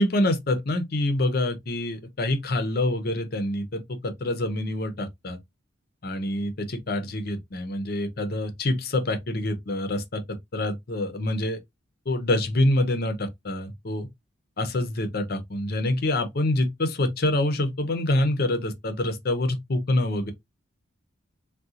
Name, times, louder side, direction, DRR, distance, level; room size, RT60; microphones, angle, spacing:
voice 1, 0.0-5.4 6.0-11.6 12.1-14.1 14.6-20.3, left 1 dB, 50° left, 0.6 m, -26 dB
3.6 x 2.3 x 2.8 m
head